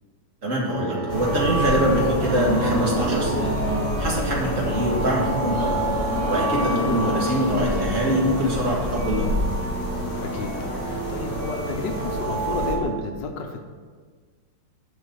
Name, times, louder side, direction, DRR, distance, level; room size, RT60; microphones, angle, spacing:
voice 1, 0.4-5.8 6.3-9.2, equal, 45° right, -3 dB, 2.2 m, -24 dB
sound 1, 0.7-12.8, right 2 dB, 65° right, 2.0 m, -30 dB
sound 2, 1.1-12.7, left 1 dB, 55° left, 2.3 m, -30 dB
sound 3, 2.2-4.9 5.5-9.1, right 1 dB, 15° right, 2.4 m, -30 dB
voice 2, 10.2-13.6, left 4 dB, 75° left, 4 dB, 1.5 m, -31 dB
7.8 x 5.4 x 6.7 m, 1.6 s
omnidirectional pair, 2.0 m